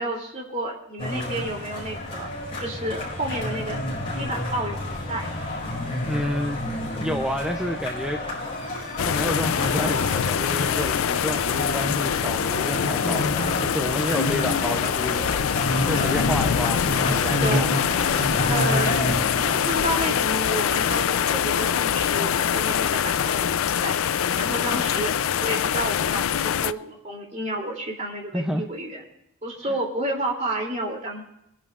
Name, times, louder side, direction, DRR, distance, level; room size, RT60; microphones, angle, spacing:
voice 1, 0.0-2.3 2.6-3.8 4.1-5.3 11.2-11.5 15.9-16.2 17.4-17.7 18.5-19.0 19.4-23.5 23.8-24.0 24.4-29.0 29.4-31.3, right 1 dB, 35° right, 1 dB, 2.8 m, -31 dB
sound 1, 1.0-19.8, left 1 dB, 30° left, 5.1 m, -29 dB
sound 2, 4.9-21.1, left 2 dB, 60° left, 2.9 m, -41 dB
voice 2, 6.0-6.7 7.0-8.2 9.0-17.7 28.3-28.6 29.7-29.8, equal, 5° right, 4 dB, 0.5 m, -30 dB
sound 3, 9.0-26.7, left 8 dB, 85° left, 0.4 m, -24 dB
24.5 x 10.5 x 2.4 m, 0.80 s
head